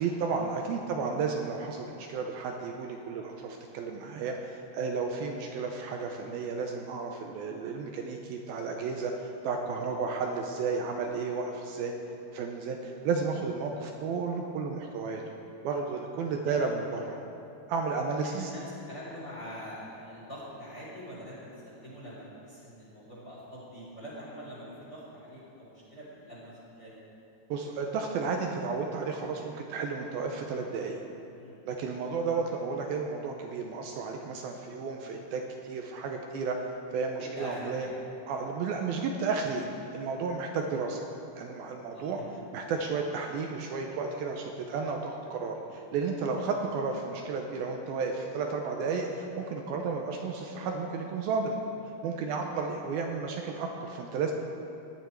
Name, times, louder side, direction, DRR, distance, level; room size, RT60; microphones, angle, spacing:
voice 1, 0.0-11.9 12.3-15.2 15.6-17.2 17.7-18.5 27.5-31.0 31.7-36.7 36.9-37.9 38.3-39.7 39.9-41.1 41.4-42.2 42.5-51.6 52.0-54.3, right 4 dB, 80° right, 2 dB, 2.4 m, -32 dB
voice 2, 16.2-16.8 18.2-27.0 31.3-31.6 37.2-37.9 39.4-39.6 41.9-42.3 52.5-52.6, equal, 25° left, -8 dB, 3.8 m, -45 dB
17.5 x 11.0 x 4.6 m, 2.8 s
omnidirectional pair, 4.7 m